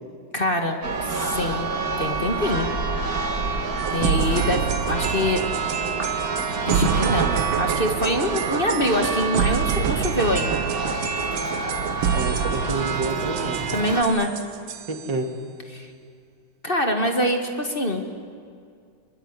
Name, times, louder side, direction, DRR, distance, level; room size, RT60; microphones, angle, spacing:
voice 1, 0.3-1.7 2.0-2.7 3.9-5.4 6.7-10.6 13.7-14.3 15.7-15.9 16.6-18.0, left 1 dB, 30° left, 5 dB, 2.2 m, -24 dB
Church bell, 0.8-14.0, right 4 dB, 50° right, 2.3 m, -28 dB
sound 1, 3.8-15.1, right 8 dB, 85° right, 1.7 m, -27 dB
voice 2, 12.1-13.7 14.9-15.4, right 3 dB, 65° right, 5 dB, 3.1 m, -28 dB
24.5 x 22.5 x 9.9 m, 2.3 s
omnidirectional pair, 2.1 m